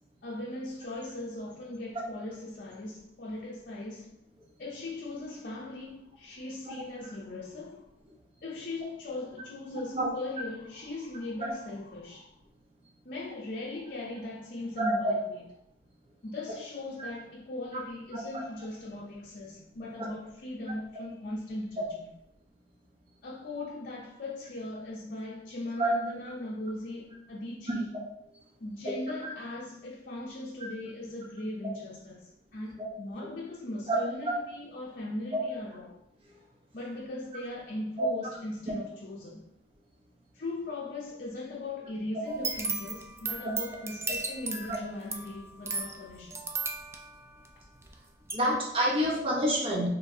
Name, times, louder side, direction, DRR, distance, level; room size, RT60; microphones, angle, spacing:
voice 1, 0.2-4.1 4.6-7.9 8.4-12.4 13.0-15.4 16.2-22.1 23.2-27.9 28.6-36.0 36.7-39.4 40.3-46.4, left 2 dB, 50° left, 0.6 m, -39 dB
voice 2, 14.8-15.1 17.0-17.1 18.1-18.2 25.8-25.9 32.8-32.9 33.9-34.0 34.3-34.4 35.3-35.4 38.0-38.1 44.7-44.8 48.3-49.9, right 1 dB, 30° right, 0.9 m, -27 dB
sound 1, 42.3-47.9 48.3-48.4, right 4 dB, 15° right, 0.3 m, -35 dB
4.4 x 3.2 x 2.7 m
head